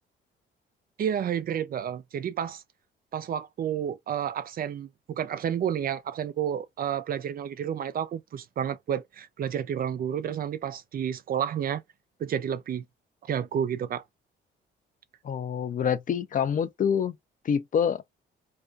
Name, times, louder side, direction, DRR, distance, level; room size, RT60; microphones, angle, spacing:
voice 1, 1.0-2.6 3.1-11.8 12.2-12.8 13.2-14.0, right 9 dB, 50° right, 0.4 m, -30 dB
voice 2, 15.2-17.2 17.4-18.0, left 7 dB, 40° left, 0.4 m, -26 dB
2.3 x 2.2 x 2.5 m
cardioid pair, 90°, 20 cm